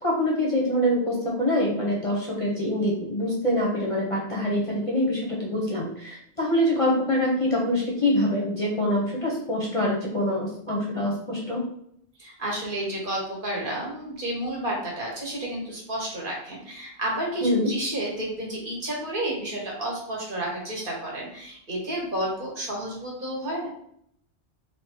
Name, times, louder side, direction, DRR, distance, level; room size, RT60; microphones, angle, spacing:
voice 1, 0.0-11.6 17.4-17.7, left 1 dB, 35° left, -3 dB, 0.6 m, -25 dB
voice 2, 12.2-23.7, right 1 dB, 50° right, -3 dB, 1.1 m, -31 dB
2.8 x 2.5 x 3.7 m, 0.70 s
omnidirectional pair, 1.2 m